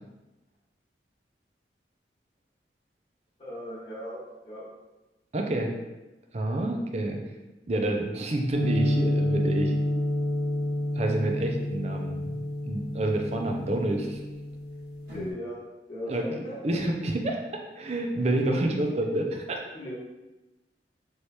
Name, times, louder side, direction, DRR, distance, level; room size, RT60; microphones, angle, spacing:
voice 1, 3.4-4.6 15.1-15.6 15.9-16.6 19.7-19.9, equal, 30° left, -9 dB, 1.4 m, -37 dB
voice 2, 5.3-5.7 6.3-7.2 7.7-9.7 10.9-14.2 16.1-16.3 16.6-17.4 17.8-19.6, right 1 dB, 40° right, 2 dB, 0.5 m, -28 dB
sound 1, 8.5-15.3, left 1 dB, 55° right, 1.5 m, -29 dB
3.3 x 3.1 x 4.3 m, 1.1 s
head